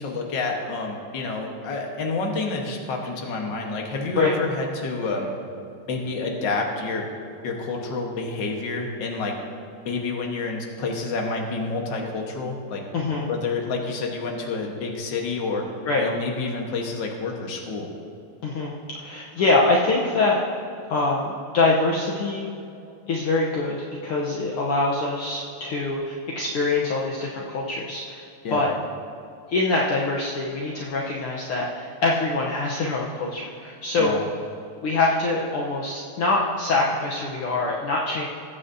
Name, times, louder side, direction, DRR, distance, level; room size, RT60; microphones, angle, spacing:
voice 1, 0.0-5.3 5.9-7.1 7.4-9.4 9.8-12.8 13.3-15.7 16.0-17.9 28.4-28.7 34.0-34.2, left 3 dB, 50° left, 1 dB, 1.5 m, -28 dB
voice 2, 12.9-13.3 15.8-16.1 18.4-20.4 20.9-22.5 23.1-23.8 24.0-28.2 28.5-28.7 29.5-34.2 34.8-38.2, left 3 dB, 70° left, -3 dB, 1.4 m, -24 dB
21.5 x 9.1 x 2.8 m, 2.6 s
omnidirectional pair, 3.6 m